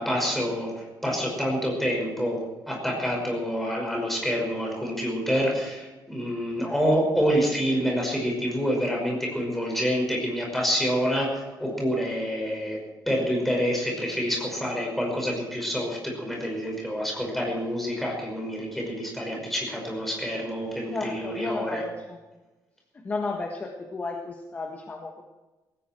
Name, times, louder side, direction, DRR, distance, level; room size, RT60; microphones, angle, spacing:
voice 1, 0.0-2.4 2.7-12.8 13.1-21.8, equal, ahead, -1 dB, 5.6 m, -27 dB
voice 2, 6.6-7.1 20.9-22.2 22.9-25.2, left 3 dB, 25° left, 2 dB, 1.5 m, -34 dB
18.5 x 17.0 x 4.5 m, 1.2 s
cardioid pair, 180°, 7 cm